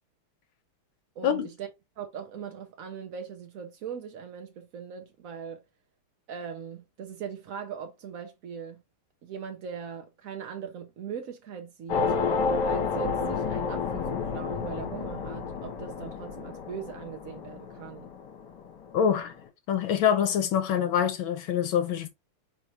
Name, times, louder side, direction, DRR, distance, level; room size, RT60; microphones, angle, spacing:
voice 1, 1.2-1.7 2.0-5.6 6.3-8.8 9.2-12.1 12.6-18.1, right 7 dB, 75° right, 0.7 m, -40 dB
sound 1, 11.9-18.7, left 5 dB, 60° left, 1.5 m, -30 dB
voice 2, 18.9-19.3 19.7-22.1, left 8 dB, 75° left, 1.4 m, -25 dB
4.6 x 4.0 x 2.9 m
omnidirectional pair, 2.4 m